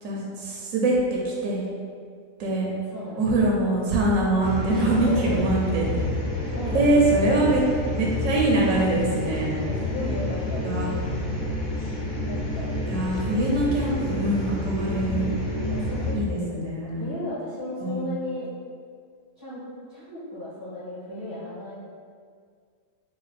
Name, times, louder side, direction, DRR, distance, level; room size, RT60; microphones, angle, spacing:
voice 1, 0.0-1.6 2.4-2.7 3.2-6.0 6.7-7.6 7.9-9.5 10.6-10.9 12.9-15.3 16.1-17.0 17.8-18.1, right 2 dB, 75° right, -3 dB, 1.1 m, -23 dB
voice 2, 2.8-3.3 4.7-5.6 6.5-7.5 9.6-10.8 12.2-12.7 15.7-16.7 17.0-18.5 19.4-19.6 19.9-21.7, left 1 dB, 15° left, -12 dB, 1.5 m, -35 dB
sound 1, 4.4-16.1, left 2 dB, 80° left, 1.2 m, -29 dB
4.0 x 2.3 x 4.0 m, 2.1 s
omnidirectional pair, 1.4 m